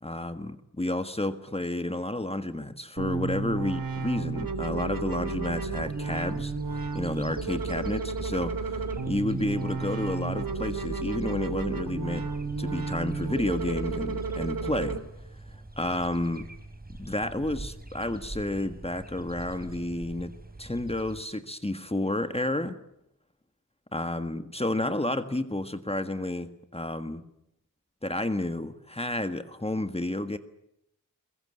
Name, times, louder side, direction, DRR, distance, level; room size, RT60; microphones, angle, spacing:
voice 1, 0.0-8.5 9.1-12.2 12.6-15.0 15.5-16.5 17.0-20.3 20.6-22.8 23.9-27.2 28.0-30.4, left 1 dB, 20° left, 9 dB, 1.6 m, -31 dB
sound 1, 3.0-15.0, right 4 dB, 85° right, 3.2 m, -32 dB
sound 2, 5.5-21.2, right 2 dB, 25° right, 4.4 m, -45 dB
22.5 x 22.5 x 9.8 m, 0.79 s
wide cardioid pair, 90°, 34 cm